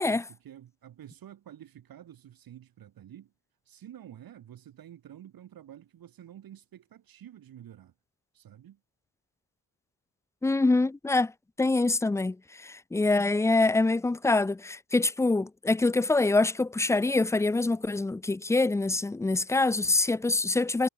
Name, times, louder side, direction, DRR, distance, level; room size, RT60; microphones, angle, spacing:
voice 1, 0.0-3.3 3.6-7.9 8.3-8.8, right 11 dB, 45° right, 4.5 m, -49 dB
voice 2, 10.4-11.3 11.6-20.9, left 2 dB, 5° left, 0.5 m, -25 dB
cardioid pair, 125°, 50 cm